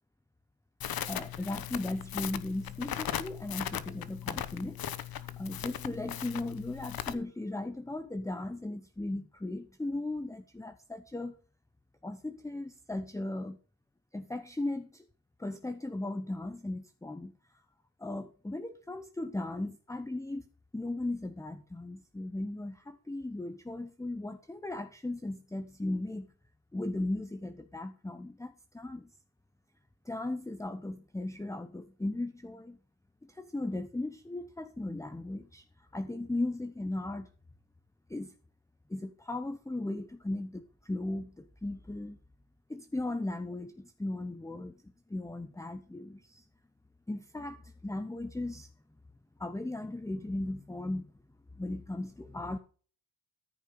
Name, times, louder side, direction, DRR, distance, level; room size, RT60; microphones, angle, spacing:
Crackle, 0.8-7.1, left 10 dB, 55° left, 1.0 m, -38 dB
voice 1, 1.1-11.4 12.0-13.6 14.1-15.1 15.4-17.3 18.0-20.4 20.7-26.3 26.7-29.1 30.0-32.8 33.2-37.3 38.1-38.3 38.9-42.2 42.7-46.4 47.1-48.7 49.4-51.1 51.5-52.6, left 2 dB, 5° left, 9 dB, 0.9 m, -37 dB
14.0 x 5.5 x 5.4 m, 0.41 s
supercardioid pair, 75°, 43 cm